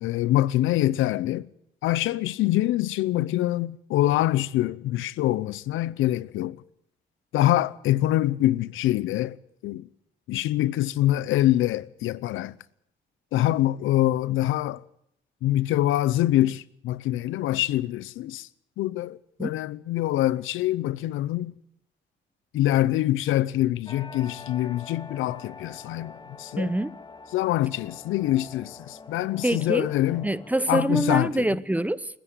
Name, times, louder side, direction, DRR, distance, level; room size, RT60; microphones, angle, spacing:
voice 1, 0.0-1.5 1.8-6.6 7.3-9.4 9.6-9.9 10.3-12.6 13.3-14.8 15.4-18.5 18.8-21.5 22.5-26.1 26.4-26.7 27.3-30.3 30.7-31.4, left 14 dB, 90° left, 0.7 m, -25 dB
sound 1, 23.9-30.6, left 4 dB, 25° left, 2.0 m, -45 dB
voice 2, 26.6-27.0 29.4-29.9 30.2-32.1, right 1 dB, 5° right, 0.8 m, -25 dB
29.0 x 10.5 x 9.5 m
cardioid pair, 90°, 20 cm